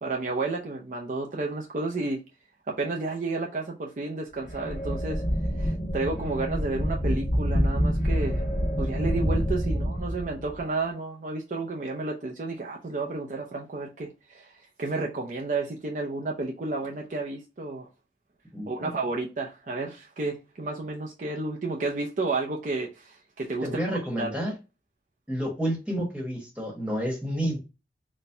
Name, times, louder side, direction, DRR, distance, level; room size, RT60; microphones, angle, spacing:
voice 1, 0.0-2.2 2.7-5.2 5.6-8.4 8.8-17.9 18.7-23.7 24.2-24.3, right 3 dB, 45° right, 0.5 m, -31 dB
sound 1, 4.4-10.6, equal, 55° left, 1.1 m, -27 dB
voice 2, 18.5-18.9 23.6-24.5 25.3-27.6, equal, 5° right, 1.2 m, -30 dB
4.2 x 2.2 x 3.3 m
head